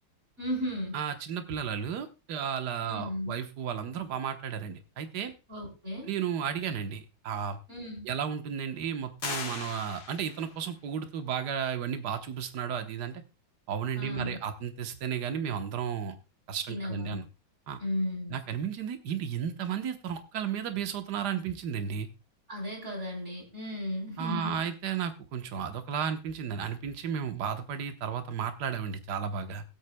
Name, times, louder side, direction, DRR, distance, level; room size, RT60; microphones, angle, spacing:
voice 1, 0.4-1.0 2.8-3.4 5.5-6.1 7.7-8.1 14.0-14.4 16.7-17.2 17.8-18.4 22.5-24.7, left 1 dB, 30° right, 0 dB, 3.8 m, -35 dB
voice 2, 0.9-5.3 6.1-7.6 8.0-13.2 13.7-16.1 16.5-17.2 17.7-17.8 18.3-22.1 24.2-29.6, right 7 dB, 55° right, 8 dB, 1.5 m, -33 dB
sound 1, 9.2-10.6, left 4 dB, 55° left, 2.2 m, -38 dB
21.5 x 8.0 x 2.2 m, 0.29 s
omnidirectional pair, 2.4 m